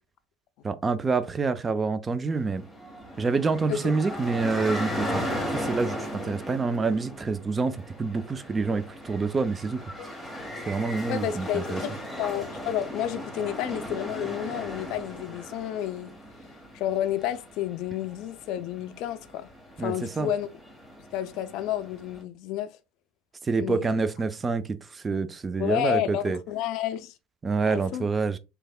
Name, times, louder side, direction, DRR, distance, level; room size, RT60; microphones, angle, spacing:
voice 1, 0.6-2.6 3.2-5.2 5.5-9.8 10.7-11.8 19.8-20.3 23.4-26.4 27.4-28.4, right 4 dB, 25° right, 0.3 m, -27 dB
sound 1, 2.3-22.2, equal, ahead, 1.5 m, -37 dB
voice 2, 11.1-16.1 16.7-19.5 19.8-20.5 21.1-22.7 23.6-23.9 25.6-27.1 27.7-28.1, left 11 dB, 55° left, 0.4 m, -30 dB
3.4 x 3.3 x 2.3 m
figure-of-eight pair, 70°, 0 cm